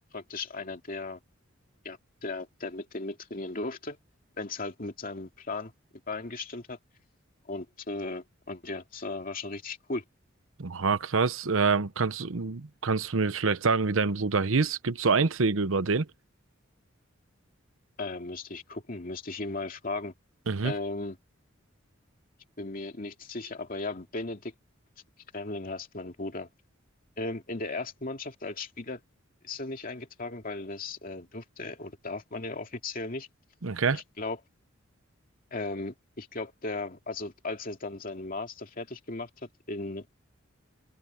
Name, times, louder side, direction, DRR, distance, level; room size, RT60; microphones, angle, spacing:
voice 1, 0.1-1.2 1.8-4.0 4.4-5.7 6.1-6.8 7.5-10.0 18.0-20.1 20.6-21.2 22.6-24.5 25.3-26.5 27.2-29.0 29.4-33.3 33.9-34.4 35.5-39.3 39.7-40.1, left 2 dB, 45° left, 2.4 m, -36 dB
voice 2, 10.6-16.1 20.5-20.7 33.6-34.0, right 4 dB, 85° right, 0.9 m, -26 dB
open air
head